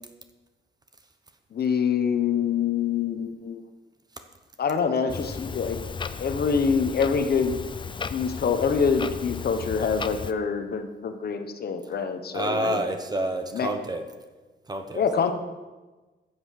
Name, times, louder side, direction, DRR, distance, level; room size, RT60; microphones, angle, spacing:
voice 1, 1.5-3.6 4.6-5.8 6.2-7.6 8.1-12.8 13.5-13.7 14.9-15.3, left 6 dB, 55° left, 7 dB, 1.1 m, -25 dB
Clock, 5.1-10.3, left 5 dB, 25° left, 0.5 m, -35 dB
voice 2, 12.3-14.0 14.7-15.1, right 1 dB, 20° right, 7 dB, 1.0 m, -28 dB
14.5 x 8.0 x 6.5 m, 1.2 s
wide cardioid pair, 170°, 20 cm